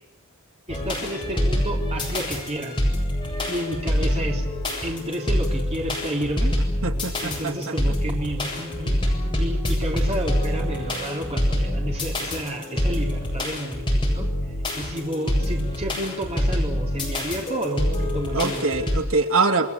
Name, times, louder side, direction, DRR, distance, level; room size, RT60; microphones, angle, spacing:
sound 1, 0.7-19.0, equal, 25° left, 7.9 m, -25 dB
voice 1, 0.7-2.8 3.5-4.5 4.8-6.6 7.2-14.3 14.8-18.8, right 1 dB, 30° right, 0 dB, 3.7 m, -31 dB
voice 2, 6.8-7.7 18.3-19.7, right 3 dB, 80° right, 4 dB, 2.8 m, -24 dB
29.5 x 20.5 x 8.4 m, 0.75 s
head